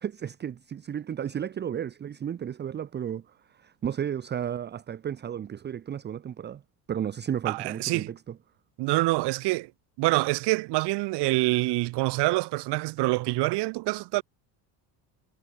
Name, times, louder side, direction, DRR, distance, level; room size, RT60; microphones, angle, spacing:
voice 1, 0.0-6.6 6.9-8.4, right 9 dB, 25° right, 0.7 m, -33 dB
voice 2, 7.5-8.1 8.8-9.7 10.0-14.2, right 22 dB, 60° right, 1.0 m, -26 dB
cardioid pair, 135°, 46 cm